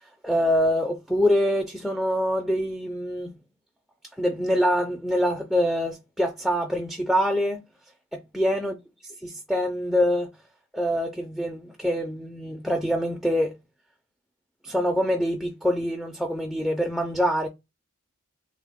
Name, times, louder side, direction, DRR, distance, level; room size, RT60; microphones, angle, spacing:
voice 1, 0.2-3.3 4.2-7.6 8.3-8.7 9.0-10.3 10.7-13.5 14.6-17.5, equal, ahead, 0.3 m, -25 dB
3.5 x 2.0 x 3.4 m
head